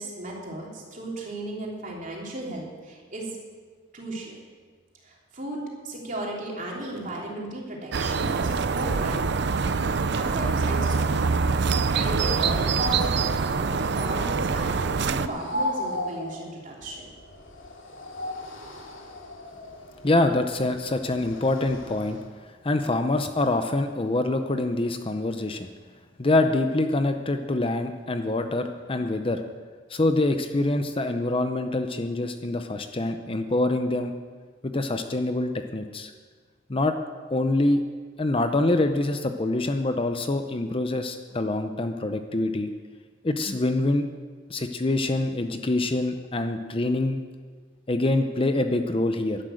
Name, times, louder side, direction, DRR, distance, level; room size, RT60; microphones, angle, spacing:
voice 1, 0.0-3.3 3.9-4.3 5.0-9.5 9.8-13.1 13.4-14.8 15.0-17.1, right 1 dB, 40° right, -2 dB, 3.2 m, -35 dB
sound 1, 7.9-15.3, right 4 dB, 60° right, 0.5 m, -25 dB
sound 2, 15.3-22.3, left 1 dB, 75° left, 2.3 m, -36 dB
voice 2, 20.0-22.2 22.6-25.7 26.2-29.4 29.9-34.1 34.6-36.1 36.7-36.9 37.3-37.8 38.2-42.7 43.2-44.0 44.5-47.2 47.9-49.4, left 2 dB, 25° left, 7 dB, 0.6 m, -25 dB
11.5 x 11.5 x 7.7 m, 1.6 s
head